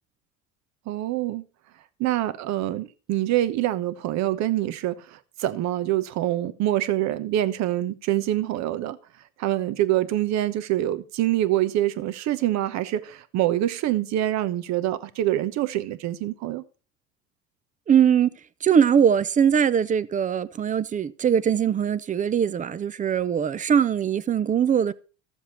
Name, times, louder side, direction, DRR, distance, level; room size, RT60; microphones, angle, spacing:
voice 1, 0.9-1.4 2.0-9.0 9.4-16.6, right 13 dB, 50° right, 1.1 m, -25 dB
voice 2, 17.9-18.3 18.6-24.9, right 8 dB, 20° right, 0.6 m, -21 dB
13.5 x 7.3 x 4.3 m
supercardioid pair, 100°, 35 cm